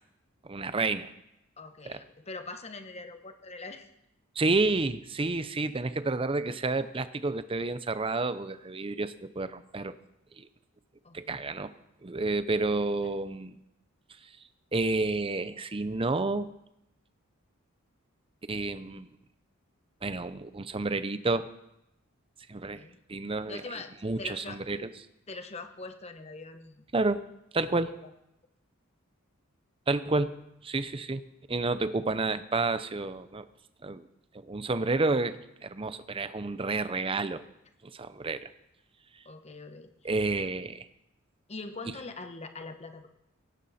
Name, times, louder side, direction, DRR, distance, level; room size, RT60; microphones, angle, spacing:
voice 1, 0.4-1.1 1.9-2.0 4.4-10.0 10.4-10.5 11.1-11.7 12.0-13.5 14.7-16.5 18.5-19.1 20.0-21.5 22.5-22.8 23.1-23.6 24.0-24.9 26.9-27.2 27.5-27.9 29.9-30.3 30.6-31.2 31.5-33.4 33.8-34.0 34.3-37.4 37.9-38.5 40.0-40.9, right 3 dB, 25° right, 13 dB, 0.6 m, -30 dB
voice 2, 1.6-3.9 11.0-11.4 22.7-23.0 23.5-24.6 25.3-26.8 27.7-28.1 39.2-39.9 40.3-40.5 41.5-43.1, left 3 dB, 30° left, 8 dB, 1.1 m, -43 dB
17.0 x 16.5 x 4.2 m, 0.85 s
head